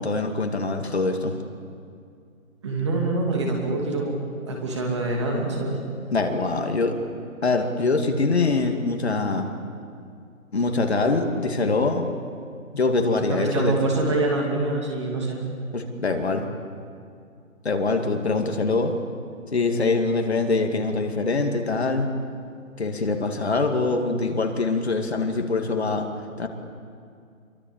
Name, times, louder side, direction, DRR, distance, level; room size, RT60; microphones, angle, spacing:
voice 1, 0.0-1.4 6.1-7.0 7.4-9.5 10.5-12.1 12.7-13.7 15.7-16.5 17.6-18.9 19.5-22.1 22.8-26.1 26.4-26.5, left 3 dB, 50° left, 4 dB, 2.5 m, -24 dB
voice 2, 2.6-4.2 4.5-5.8 13.3-15.4, right 2 dB, 20° right, 0 dB, 2.8 m, -25 dB
28.0 x 23.5 x 7.3 m, 2.4 s
figure-of-eight pair, 170°, 42 cm